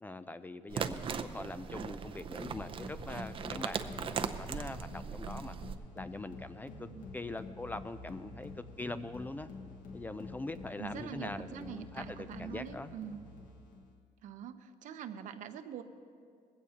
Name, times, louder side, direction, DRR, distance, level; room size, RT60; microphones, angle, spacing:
voice 1, 0.0-5.6 5.9-6.9 7.1-8.5 8.8-9.5 9.9-12.9, left 2 dB, 15° left, 11 dB, 0.4 m, -42 dB
sound 1, 0.7-5.8, right 7 dB, 40° right, 0.6 m, -39 dB
sound 2, 2.4-13.9, left 3 dB, 75° left, 1.6 m, -48 dB
voice 2, 5.0-5.4 6.9-7.1 10.8-13.3 14.2-15.8, right 8 dB, 65° right, 9 dB, 0.8 m, -44 dB
20.0 x 15.5 x 2.9 m, 2.2 s
cardioid pair, 120°, 14 cm